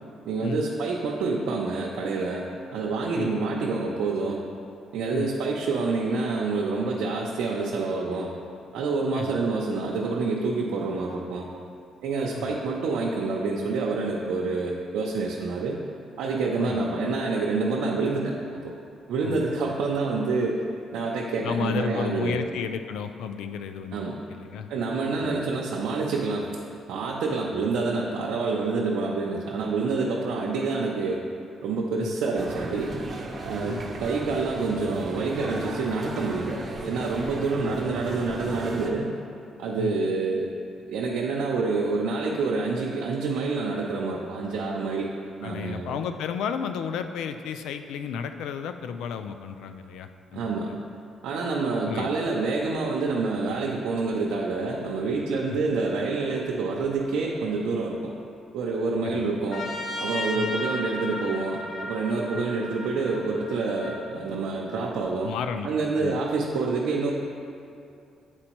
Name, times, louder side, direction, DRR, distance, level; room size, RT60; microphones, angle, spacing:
voice 1, 0.2-4.4 4.9-8.3 8.7-11.5 12.0-15.8 16.2-18.7 19.1-20.6 20.9-22.4 23.9-24.2 24.7-26.6 26.9-31.2 31.6-32.9 33.4-39.2 39.6-40.5 40.9-45.1 45.4-45.9 50.3-50.7 51.2-58.2 58.5-59.7 60.0-65.3 65.6-67.1, right 3 dB, 85° right, -2 dB, 0.5 m, -27 dB
voice 2, 19.2-19.6 21.4-24.7 25.2-25.4 32.0-32.2 33.7-33.8 39.8-39.9 45.4-50.8 51.8-52.1 55.5-55.6 59.0-59.4 60.3-60.5 62.3-62.4 65.2-65.7 66.0-66.2, left 7 dB, 85° left, 8 dB, 0.3 m, -33 dB
sound 1, 32.3-38.9, right 1 dB, 40° right, 0.7 m, -35 dB
Trumpet, 59.5-64.1, left 1 dB, 50° left, 0.8 m, -34 dB
8.8 x 4.2 x 3.0 m, 2.5 s
cardioid pair, 90°, 0 cm